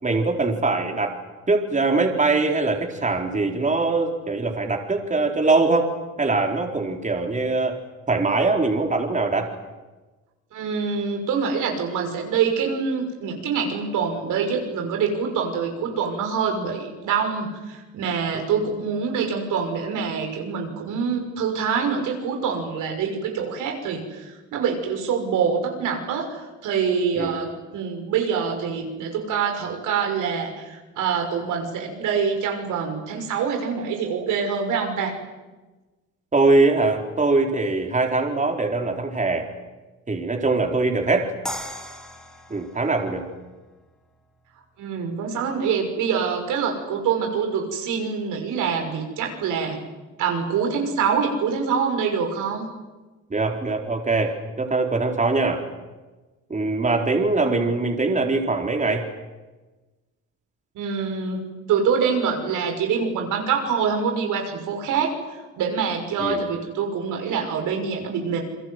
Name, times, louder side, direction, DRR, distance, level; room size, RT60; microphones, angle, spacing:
voice 1, 0.0-1.2 1.5-5.9 6.2-7.8 8.1-9.5 27.1-27.3 36.3-39.5 40.1-41.3 42.5-43.2 53.3-55.6 56.5-59.1 66.2-66.4, right 3 dB, 25° right, 2 dB, 4.4 m, -22 dB
voice 2, 10.5-35.1 44.8-49.8 50.2-52.7 60.7-68.4, right 6 dB, 85° right, 3 dB, 6.2 m, -25 dB
sound 1, 41.5-44.5, left 1 dB, ahead, 4.5 m, -38 dB
29.5 x 22.5 x 8.0 m, 1.2 s
cardioid pair, 90°, 30 cm